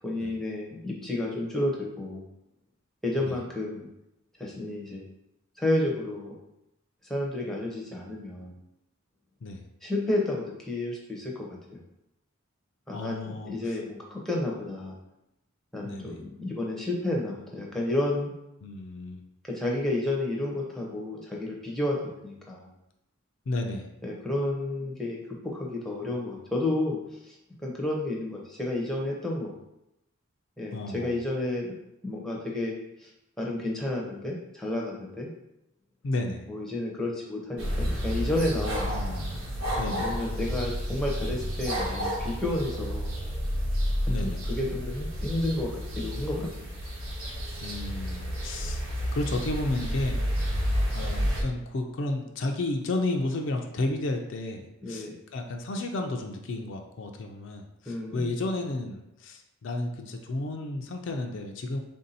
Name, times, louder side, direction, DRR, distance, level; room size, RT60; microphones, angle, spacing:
voice 1, 0.0-2.3 3.0-3.9 4.4-5.0 5.6-6.3 7.1-8.6 9.8-11.8 12.9-15.0 15.7-18.3 19.5-22.7 24.0-29.5 30.6-31.7 32.0-32.7 33.0-33.1 33.4-35.3 36.5-38.9 39.9-43.1 44.2-46.5 54.8-55.1 57.9-58.3, left 1 dB, ahead, -3 dB, 0.6 m, -31 dB
voice 2, 12.9-13.5 15.8-16.2 18.6-19.2 23.5-23.9 30.7-31.1 36.0-36.4 38.9-39.3 39.8-40.1 44.1-44.4 47.6-48.8 49.1-50.2 50.9-61.8, left 2 dB, 60° left, 3 dB, 0.4 m, -32 dB
sound 1, 37.6-51.4, equal, 90° right, 1.1 m, -30 dB
3.6 x 2.6 x 4.0 m, 0.86 s
head